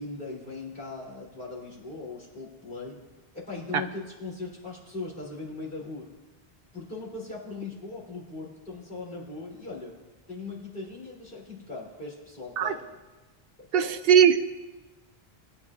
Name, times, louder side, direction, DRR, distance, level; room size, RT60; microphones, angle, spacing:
voice 1, 0.0-3.0 3.3-6.1 6.7-9.9 10.3-12.9 13.7-14.0, left 3 dB, 60° left, -5 dB, 3.3 m, -39 dB
voice 2, 13.7-14.5, right 8 dB, 70° right, 8 dB, 0.8 m, -19 dB
21.0 x 9.5 x 2.4 m, 1.2 s
omnidirectional pair, 1.0 m